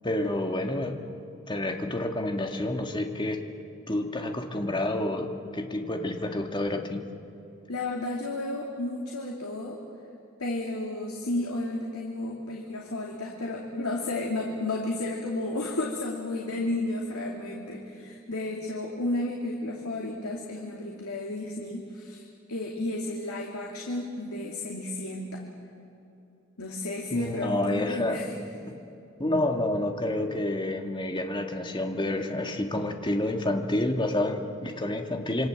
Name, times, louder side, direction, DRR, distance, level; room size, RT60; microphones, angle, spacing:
voice 1, 0.0-1.1 1.5-3.5 3.9-7.1 27.1-28.2 28.6-28.8 29.2-35.5, left 1 dB, 20° left, 4 dB, 1.7 m, -29 dB
voice 2, 7.7-9.8 10.4-25.4 26.6-28.3, left 2 dB, 85° left, 0 dB, 2.6 m, -32 dB
27.0 x 24.0 x 7.7 m, 2.8 s
head